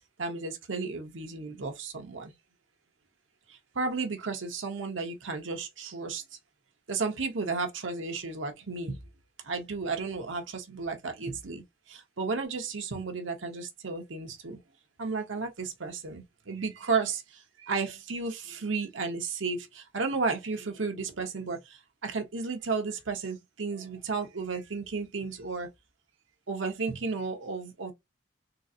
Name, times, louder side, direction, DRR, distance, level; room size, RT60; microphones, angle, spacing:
voice 1, 0.2-2.3 3.5-6.2 6.9-9.1 9.4-14.6 15.0-25.7 26.5-27.9, right 4 dB, 85° right, 0.9 m, -33 dB
3.8 x 2.4 x 2.7 m
head